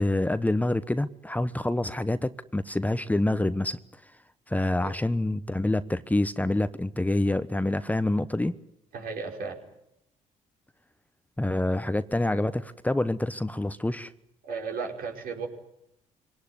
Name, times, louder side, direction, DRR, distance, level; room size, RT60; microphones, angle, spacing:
voice 1, 0.0-3.8 4.5-8.5 11.4-14.1, left 1 dB, 10° left, 13 dB, 1.1 m, -27 dB
voice 2, 8.9-9.6 14.4-15.5, right 5 dB, 65° right, 2 dB, 5.4 m, -34 dB
23.5 x 18.0 x 9.9 m, 0.81 s
hypercardioid pair, 55°, 16 cm